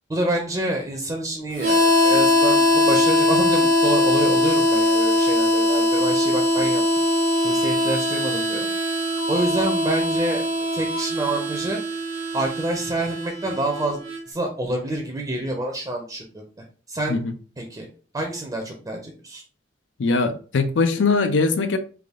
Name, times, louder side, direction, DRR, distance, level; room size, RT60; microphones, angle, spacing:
voice 1, 0.1-6.8 7.4-8.7 9.3-10.4 10.7-11.8 12.3-14.0 14.3-16.4 16.9-17.2 17.6-17.9 18.1-19.4, right 1 dB, 20° right, 0.5 m, -27 dB
Harmonica, 1.6-14.2, left 1 dB, 80° right, 1.1 m, -21 dB
voice 2, 20.0-21.8, left 4 dB, 85° left, 0.5 m, -21 dB
3.4 x 2.3 x 3.5 m
head